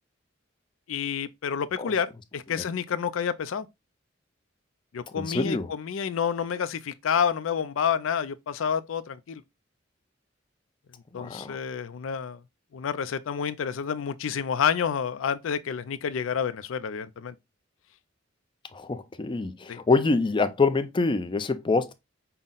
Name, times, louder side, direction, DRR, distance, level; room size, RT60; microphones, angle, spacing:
voice 1, 0.9-3.7 4.9-9.4 11.1-12.4 12.7-17.3 19.7-19.8, left 7 dB, 80° left, 0.4 m, -29 dB
voice 2, 5.2-5.7 11.1-11.6 18.7-21.9, left 3 dB, 25° left, 0.4 m, -25 dB
5.6 x 2.1 x 3.7 m
head